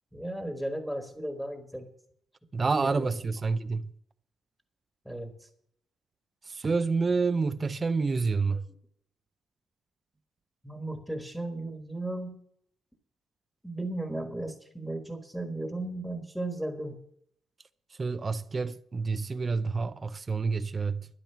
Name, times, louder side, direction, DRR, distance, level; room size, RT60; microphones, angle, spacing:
voice 1, 0.1-1.9 2.6-3.1 5.0-5.5 8.5-8.6 10.6-12.4 13.6-17.0, right 1 dB, ahead, 1.5 m, -35 dB
voice 2, 2.5-3.9 6.5-8.6 18.0-21.1, right 4 dB, 25° right, 0.5 m, -28 dB
12.5 x 10.0 x 5.7 m
cardioid pair, 135°, 0 cm